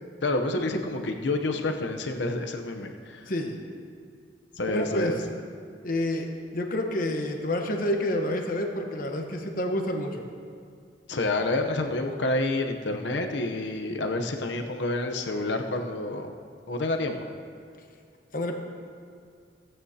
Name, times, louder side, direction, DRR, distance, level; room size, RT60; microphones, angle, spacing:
voice 1, 0.2-3.2 4.6-5.2 11.1-16.3 16.7-17.3, left 2 dB, 85° left, 4 dB, 0.8 m, -28 dB
voice 2, 4.7-5.1 5.8-10.2 18.3-18.5, left 1 dB, 50° left, 3 dB, 1.1 m, -29 dB
17.0 x 8.9 x 2.8 m, 2.3 s
head